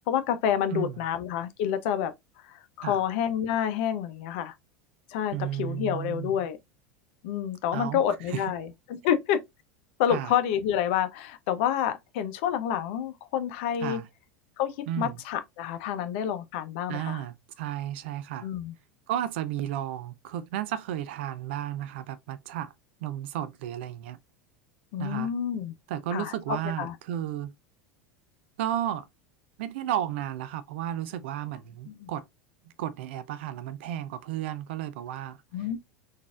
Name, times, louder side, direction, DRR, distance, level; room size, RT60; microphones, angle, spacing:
voice 1, 0.0-2.1 2.5-4.5 5.1-6.6 7.2-9.4 10.0-14.0 14.6-17.2 18.4-18.7 24.9-25.7 26.1-26.3 26.8-26.9 31.9-32.1 35.5-35.8, left 9 dB, 65° left, 0.7 m, -28 dB
voice 2, 5.3-6.4 7.7-8.5 10.1-10.3 13.8-14.1 14.9-15.2 16.9-18.5 19.1-22.7 23.0-24.2 25.0-25.3 25.9-27.5 28.6-29.1 29.6-32.2 32.8-35.8, right 11 dB, 70° right, 0.5 m, -33 dB
3.9 x 2.7 x 2.4 m
hypercardioid pair, 85°, 6 cm